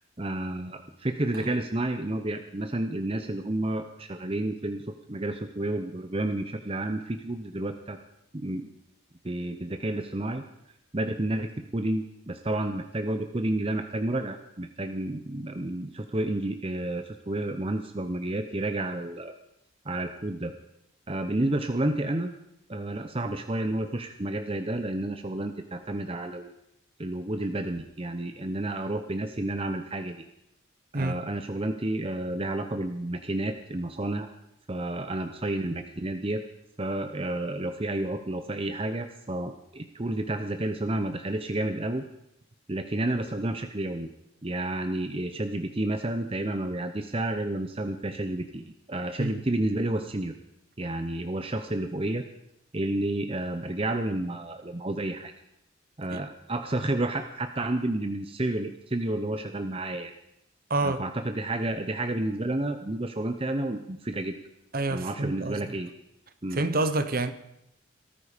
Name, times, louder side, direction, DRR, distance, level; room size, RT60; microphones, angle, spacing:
voice 1, 0.2-8.0 8.3-8.7 9.2-10.4 10.9-19.4 19.8-20.5 21.1-22.3 22.7-26.5 27.0-30.2 30.9-34.3 34.7-36.4 36.8-42.0 42.7-44.1 44.4-50.3 50.8-52.2 52.7-55.3 56.0-60.1 60.8-64.4 64.9-65.9 66.4-66.6, right 1 dB, 25° right, 0.8 m, -30 dB
voice 2, 60.7-61.0 64.7-65.7 66.5-67.3, right 2 dB, 45° right, 1.0 m, -28 dB
18.0 x 14.0 x 5.2 m
head